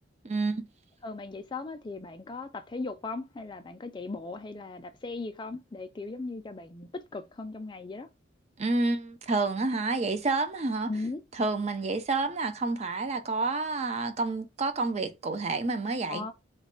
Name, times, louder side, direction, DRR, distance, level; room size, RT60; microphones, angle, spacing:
voice 1, 0.2-0.7 8.6-10.9 11.4-16.3, right 3 dB, 35° right, 0.4 m, -29 dB
voice 2, 1.0-8.1 10.9-11.2 16.1-16.3, left 3 dB, 25° left, 0.4 m, -38 dB
3.1 x 2.2 x 3.7 m
head